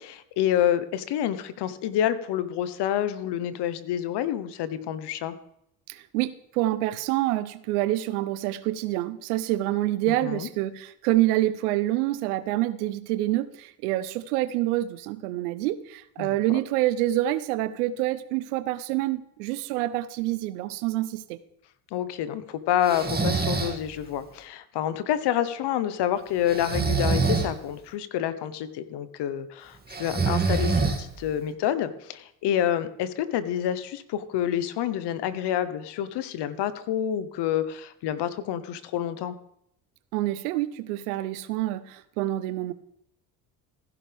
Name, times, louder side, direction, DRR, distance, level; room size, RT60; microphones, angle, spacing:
voice 1, 0.0-5.3 10.2-10.5 16.2-16.4 21.9-39.3, left 10 dB, 65° left, 13 dB, 1.2 m, -28 dB
voice 2, 5.9-21.4 40.1-42.7, right 15 dB, 90° right, 15 dB, 0.8 m, -27 dB
Breathing, 22.8-23.8 26.5-27.5 29.9-31.3, right 4 dB, 20° right, 2.4 m, -25 dB
15.5 x 11.0 x 3.5 m, 0.75 s
supercardioid pair, 70°, 43 cm